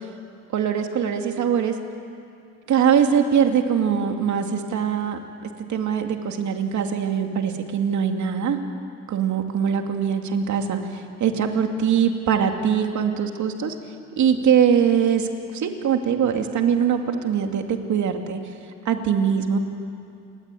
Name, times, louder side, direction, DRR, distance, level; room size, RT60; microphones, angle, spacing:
voice 1, 0.5-1.8 2.7-5.2 5.7-8.6 9.1-13.7 14.2-18.4 18.8-19.6, right 7 dB, 70° right, 4 dB, 2.6 m, -22 dB
28.0 x 22.5 x 9.3 m, 2.5 s
cardioid pair, 90°, 30 cm